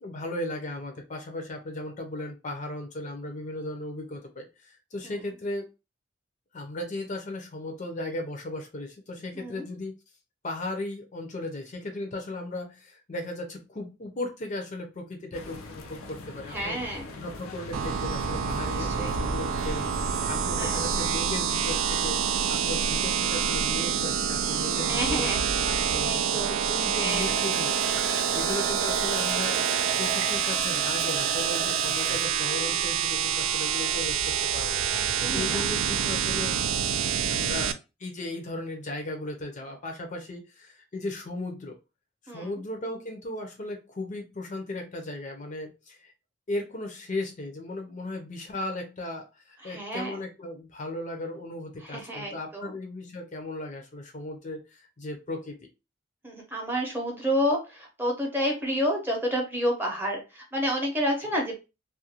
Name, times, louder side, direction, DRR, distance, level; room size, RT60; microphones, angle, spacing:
voice 1, 0.0-5.7 6.5-9.9 10.4-16.8 17.2-25.3 25.7-26.4 26.7-36.6 37.3-37.7 38.0-41.8 42.2-46.1 46.5-55.6 61.2-61.3, left 2 dB, 40° left, 3 dB, 0.5 m, -36 dB
sound 1, 15.3-21.1, left 2 dB, 90° left, 0.5 m, -39 dB
voice 2, 16.5-17.0 18.7-19.1 20.5-20.9 24.9-25.5 25.8-26.6 27.0-27.4 28.3-28.6 34.9-35.7 42.3-42.5 49.6-50.1 51.8-52.7 56.2-61.6, equal, 10° right, 0 dB, 0.7 m, -30 dB
sound 2, 17.7-37.7, right 8 dB, 80° right, 0.3 m, -27 dB
Water tap faucet, 27.1-33.6 33.9-34.0 34.5-34.6, right 4 dB, 65° right, 0.7 m, -36 dB
2.4 x 2.2 x 2.7 m, 0.28 s
head